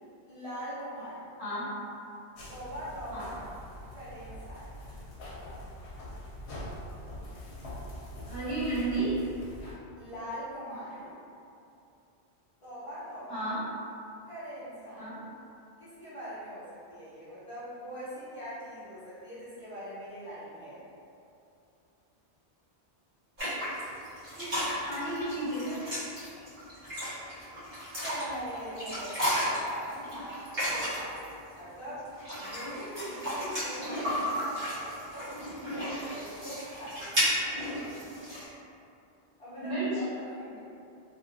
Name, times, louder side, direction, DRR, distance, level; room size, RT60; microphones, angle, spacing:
voice 1, 0.2-1.2 2.5-3.4 3.9-4.7 9.9-11.1 12.6-13.5 14.3-15.1 15.8-20.8 28.0-32.1 32.4-35.4 35.7-37.3 39.4-40.6, equal, 30° left, -13 dB, 0.8 m, -42 dB
sound 1, 2.4-9.7, left 1 dB, 85° left, 1.0 m, -43 dB
voice 2, 8.3-9.1 13.3-13.6 15.0-15.2 24.4-25.8 39.6-40.0, right 2 dB, 80° right, -14 dB, 1.9 m, -33 dB
sound 2, 23.4-31.3 32.0-38.4, equal, 45° right, 1.4 m, -34 dB
3.0 x 2.7 x 2.5 m, 2.7 s
omnidirectional pair, 1.1 m